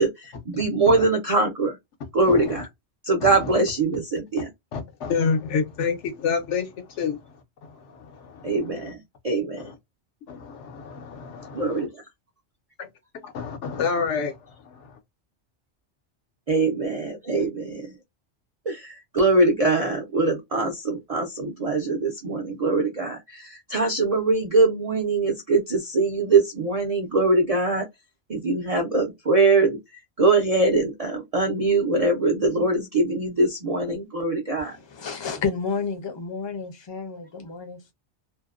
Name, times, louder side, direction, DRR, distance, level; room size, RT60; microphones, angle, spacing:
voice 1, 0.0-1.8 2.1-2.7 3.0-4.5 8.4-9.7 11.6-11.9 16.5-17.9 18.7-27.9 28.3-34.8, right 3 dB, 55° right, 0.4 m, -22 dB
voice 2, 2.3-2.6 3.2-3.5 4.7-8.8 9.6-9.7 10.3-11.7 13.2-15.0, left 5 dB, 80° left, 1.0 m, -29 dB
voice 3, 34.6-37.9, left 5 dB, 35° left, 0.4 m, -31 dB
2.5 x 2.1 x 2.3 m
omnidirectional pair, 1.2 m